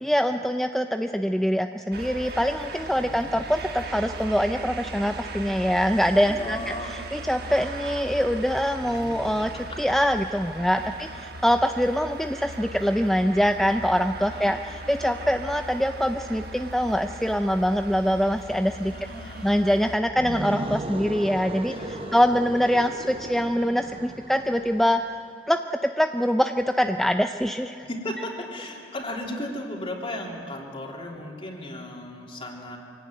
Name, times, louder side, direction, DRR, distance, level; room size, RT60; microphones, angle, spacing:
voice 1, 0.0-18.9 19.2-25.0 25.5-27.8, equal, ahead, 6 dB, 0.5 m, -24 dB
sound 1, 1.9-20.0, right 1 dB, 65° right, 1.6 m, -39 dB
voice 2, 2.9-3.4 6.3-7.2 8.8-9.8 10.8-11.1 14.3-14.9 18.9-19.7 21.6-22.3 27.8-32.8, left 1 dB, 35° left, -1 dB, 3.4 m, -36 dB
sound 2, 20.1-25.1, right 1 dB, 35° right, 1.0 m, -36 dB
24.5 x 17.0 x 9.2 m, 2.5 s
head